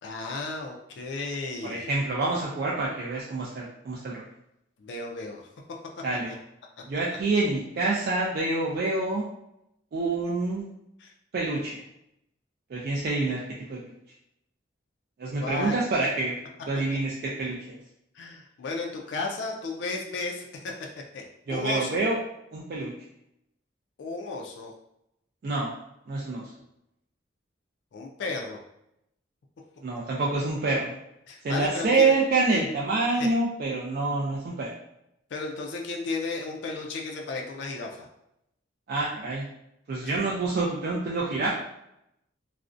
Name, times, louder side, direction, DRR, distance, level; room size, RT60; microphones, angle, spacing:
voice 1, 0.0-1.9 4.8-5.4 11.0-11.1 15.2-15.8 18.1-20.7 21.1-21.2 21.5-21.9 24.0-24.7 27.9-28.6 31.3-32.1 32.5-32.6 33.2-33.3 35.3-38.1 40.0-40.1, left 3 dB, 65° left, 1 dB, 0.3 m, -34 dB
voice 2, 1.6-4.2 6.0-6.3 6.9-9.2 9.9-10.6 11.3-11.8 12.7-13.4 13.7-13.8 15.2-16.4 16.7-17.6 21.5-22.2 22.5-22.9 25.4-25.7 26.1-26.5 29.8-30.9 31.4-34.7 38.9-39.5 39.9-41.5, right 3 dB, 50° right, -4 dB, 0.3 m, -27 dB
2.4 x 2.0 x 2.4 m, 0.82 s
head